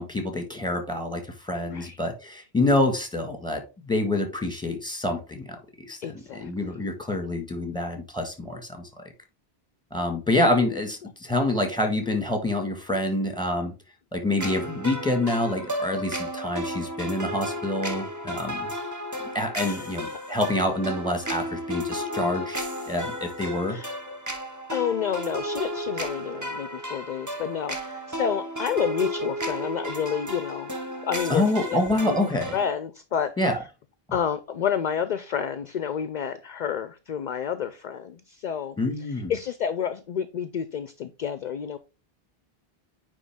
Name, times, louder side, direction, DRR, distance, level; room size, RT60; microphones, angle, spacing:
voice 1, 0.0-3.6 3.9-5.6 5.9-6.0 6.3-8.9 9.9-13.7 14.1-18.7 19.3-23.8 31.3-32.6 33.4-33.6 38.8-39.3, left 1 dB, 5° left, 1.6 m, -27 dB
voice 2, 6.0-6.7 11.0-11.1 19.6-19.9 23.7-23.9 24.7-30.7 31.0-32.2 32.5-33.3 34.1-41.8, left 8 dB, 55° left, 0.6 m, -30 dB
sound 1, 14.4-32.7, equal, 20° right, 0.9 m, -33 dB
9.3 x 3.4 x 3.5 m
omnidirectional pair, 1.0 m